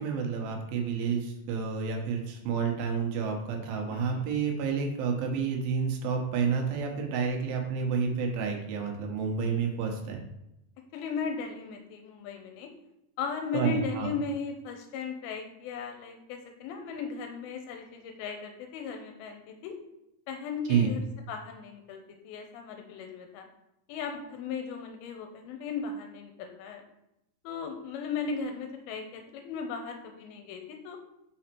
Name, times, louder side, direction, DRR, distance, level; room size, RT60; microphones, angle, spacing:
voice 1, 0.0-10.2 13.5-14.1 20.7-20.9, right 6 dB, 80° right, 2 dB, 2.7 m, -29 dB
voice 2, 3.9-4.2 10.9-12.7 13.2-19.7 20.3-21.0 21.3-23.5 23.9-26.8 27.4-31.0, left 5 dB, 85° left, 4 dB, 2.6 m, -37 dB
5.6 x 5.1 x 4.4 m, 0.86 s
omnidirectional pair, 4.3 m